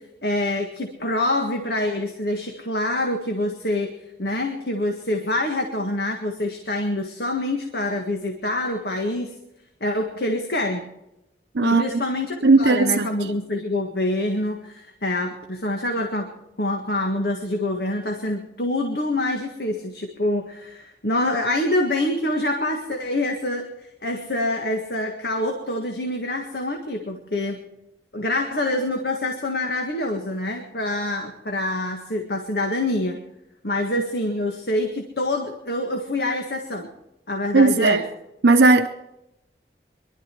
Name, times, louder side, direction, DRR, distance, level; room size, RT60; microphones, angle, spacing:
voice 1, 0.2-3.9 4.2-9.3 9.8-10.9 11.6-16.3 16.6-27.6 28.1-33.2 33.6-36.9 37.3-38.0, left 1 dB, 65° left, 1.7 m, -26 dB
voice 2, 11.5-12.0 12.4-13.1 37.5-38.0 38.4-38.9, right 3 dB, 85° right, 0.7 m, -16 dB
23.0 x 12.0 x 4.6 m
head